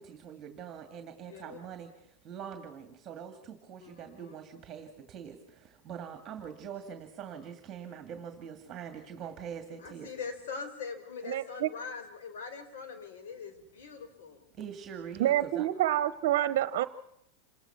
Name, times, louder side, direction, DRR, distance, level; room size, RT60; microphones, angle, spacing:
voice 1, 0.0-1.9 2.2-10.1 14.6-15.7, right 8 dB, 30° right, 6 dB, 2.3 m, -43 dB
voice 2, 1.3-1.6 3.8-4.4 9.8-14.4, left 5 dB, 80° left, 8 dB, 4.7 m, -42 dB
voice 3, 11.3-11.7 15.2-16.9, right 13 dB, 65° right, 14 dB, 0.9 m, -27 dB
28.0 x 19.0 x 6.0 m, 0.75 s
supercardioid pair, 150°, 0 cm